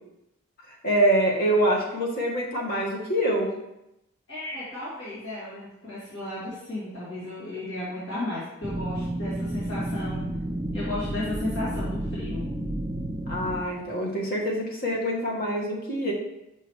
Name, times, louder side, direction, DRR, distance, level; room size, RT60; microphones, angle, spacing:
voice 1, 0.8-3.5 13.3-16.1, right 1 dB, 40° left, -3 dB, 1.4 m, -25 dB
voice 2, 4.3-10.2 10.7-12.5, left 1 dB, 65° left, -10 dB, 2.0 m, -34 dB
sound 1, 8.6-13.6, right 1 dB, 25° right, 0.6 m, -31 dB
5.9 x 5.5 x 3.1 m, 0.86 s
head